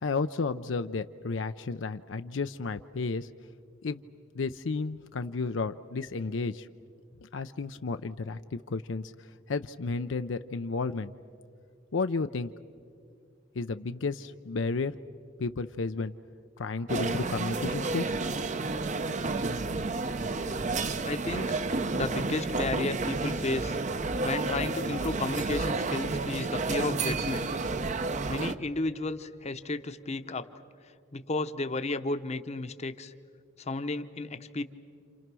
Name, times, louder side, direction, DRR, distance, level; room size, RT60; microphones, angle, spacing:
voice 1, 0.0-3.3 3.8-4.0 4.3-6.7 7.2-11.1 11.9-12.5 13.5-14.9 15.4-16.1 16.6-18.2, left 4 dB, 75° left, 9 dB, 0.6 m, -32 dB
sound 1, 16.9-28.5, right 3 dB, 40° right, 0.7 m, -31 dB
voice 2, 21.0-21.6 21.9-23.8 24.2-27.5 28.3-30.5 31.1-33.1 33.6-34.6, left 2 dB, 35° left, 9 dB, 0.9 m, -33 dB
29.5 x 28.0 x 6.1 m, 2.3 s
head